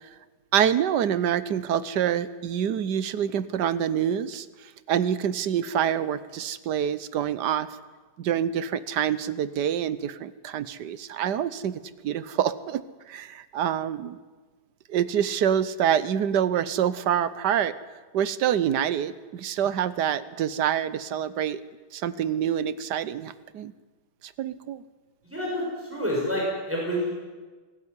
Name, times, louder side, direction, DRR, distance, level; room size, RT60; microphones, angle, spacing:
voice 1, 0.5-7.7 8.2-14.2 14.9-17.8 18.1-21.6 21.9-23.7 24.2-24.8, right 9 dB, 75° right, 16 dB, 1.4 m, -26 dB
voice 2, 25.3-27.1, equal, 5° right, -4 dB, 6.4 m, -28 dB
21.5 x 13.5 x 9.7 m, 1.3 s
omnidirectional pair, 1.9 m